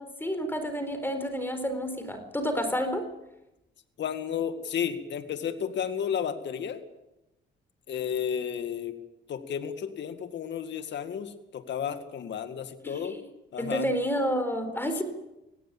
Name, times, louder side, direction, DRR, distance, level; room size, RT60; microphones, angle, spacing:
voice 1, 0.0-3.1 12.8-13.2 13.6-15.0, equal, 10° left, 8 dB, 4.1 m, -30 dB
voice 2, 4.0-6.8 7.9-9.0 9.3-13.2 13.5-13.9, left 8 dB, 65° left, 9 dB, 2.1 m, -32 dB
18.5 x 17.0 x 8.9 m, 0.93 s
cardioid pair, 90°, 20 cm